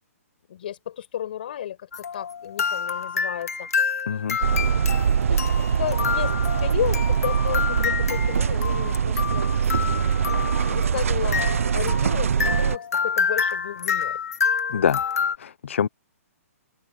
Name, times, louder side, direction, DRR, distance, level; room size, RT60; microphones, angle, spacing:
voice 1, 0.5-1.9 2.1-3.7 4.5-4.8 5.3-6.3 6.6-10.2 10.7-14.2, left 11 dB, 40° left, 5.8 m, -33 dB
sound 1, 1.9-15.4, left 6 dB, 75° left, 2.5 m, -28 dB
voice 2, 4.1-4.4 14.7-15.0 15.4-15.9, left 8 dB, 55° left, 0.8 m, -24 dB
sound 2, 4.4-12.8, right 7 dB, 60° right, 0.7 m, -23 dB
hypercardioid pair, 175°, 8 cm